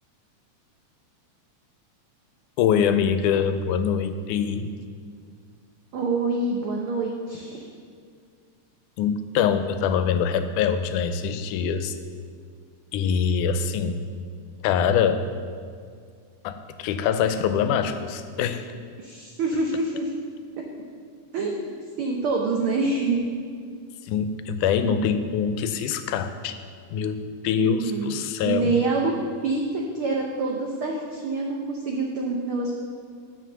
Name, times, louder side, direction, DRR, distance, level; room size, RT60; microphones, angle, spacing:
voice 1, 2.6-4.7 9.0-11.9 12.9-14.0 14.6-15.2 16.4-18.6 24.1-26.6 26.9-28.8, left 7 dB, 90° left, 10 dB, 2.1 m, -24 dB
voice 2, 5.9-7.6 19.0-20.1 20.6-20.7 21.3-23.3 27.6-28.1 28.4-29.2 29.4-32.7, right 3 dB, 80° right, 0 dB, 1.2 m, -26 dB
9.3 x 5.7 x 6.3 m, 2.1 s
omnidirectional pair, 3.5 m